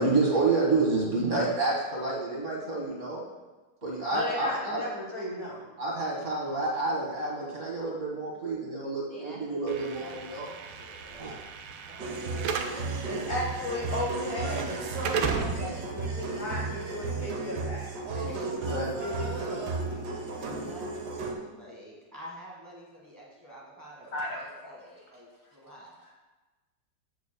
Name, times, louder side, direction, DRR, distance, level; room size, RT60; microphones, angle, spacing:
voice 1, 0.0-3.2 3.8-4.8 5.8-10.5 11.2-11.3 18.6-18.9, right 3 dB, 45° right, -4 dB, 1.6 m, -29 dB
voice 2, 4.1-5.6 13.1-20.4 20.8-20.9 21.4-21.7 24.1-24.8 26.0-26.1, left 1 dB, 50° left, -2 dB, 1.3 m, -36 dB
voice 3, 9.1-11.4 11.8-12.6 15.0-15.4 18.2-18.5 20.2-26.0, left 1 dB, 10° right, -4 dB, 1.2 m, -48 dB
Slam / Alarm, 9.7-17.7, right 5 dB, 85° right, 1.4 m, -36 dB
sound 1, 12.0-21.3, right 3 dB, 65° right, 1.4 m, -34 dB
8.1 x 7.1 x 2.2 m, 1.2 s
omnidirectional pair, 2.1 m